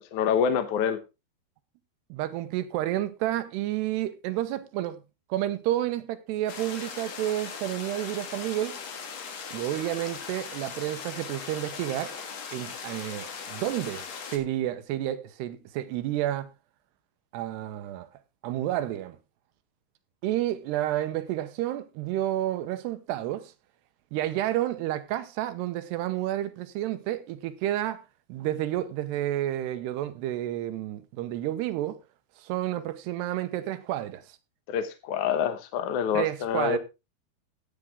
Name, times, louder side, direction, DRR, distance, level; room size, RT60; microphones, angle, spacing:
voice 1, 0.1-1.0 34.7-36.8, left 8 dB, 70° left, 1.9 m, -26 dB
voice 2, 2.1-5.0 5.3-8.7 9.5-12.1 12.5-16.5 17.3-18.1 18.4-19.2 20.2-23.5 24.1-28.0 28.3-32.0 32.4-34.2 36.1-36.8, right 13 dB, 85° right, 3.0 m, -30 dB
sound 1, 6.5-14.4, left 6 dB, 50° left, 2.2 m, -39 dB
13.5 x 9.0 x 3.5 m
omnidirectional pair, 4.7 m